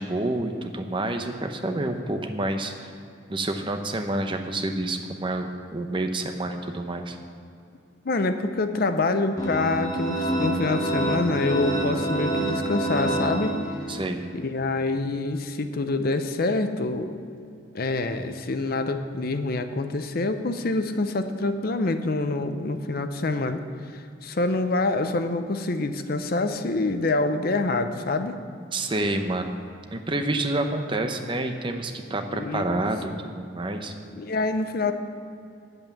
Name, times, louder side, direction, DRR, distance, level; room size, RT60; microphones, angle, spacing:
voice 1, 0.0-2.9 3.3-7.2 13.9-14.2 28.7-29.6 29.9-33.9, right 2 dB, 25° right, 6 dB, 0.7 m, -28 dB
voice 2, 8.0-13.6 14.3-17.2 17.7-23.6 23.9-28.4 32.3-32.8 34.2-34.9, left 2 dB, 50° left, 8 dB, 0.6 m, -26 dB
sound 1, 9.4-14.1, right 1 dB, 20° left, 1.4 m, -27 dB
9.1 x 8.1 x 7.1 m, 2.6 s
head